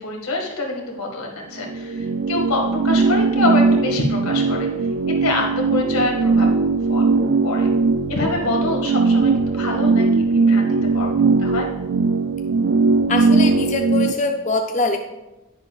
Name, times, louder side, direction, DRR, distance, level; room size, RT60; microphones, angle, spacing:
voice 1, 0.0-4.7 5.2-6.5 6.9-7.0 7.4-7.7 8.1-11.1 11.4-11.7, left 2 dB, 85° left, 0 dB, 1.9 m, -26 dB
sound 1, 1.6-14.1, right 4 dB, 55° right, 0.4 m, -19 dB
voice 2, 13.1-15.0, left 3 dB, 35° left, 4 dB, 0.5 m, -23 dB
10.0 x 10.0 x 2.4 m, 0.98 s
head